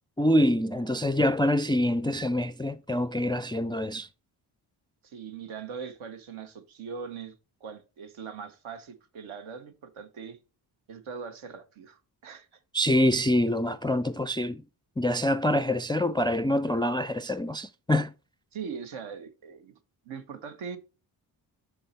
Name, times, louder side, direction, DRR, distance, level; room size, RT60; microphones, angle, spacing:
voice 1, 0.2-4.1 12.7-14.6 15.0-18.1, left 1 dB, 10° left, 0.3 m, -25 dB
voice 2, 5.0-7.3 7.6-10.4 10.9-12.5 18.5-19.7 20.0-20.8, right 6 dB, 70° right, 1.3 m, -41 dB
5.5 x 5.4 x 4.3 m
supercardioid pair, 45°, 50 cm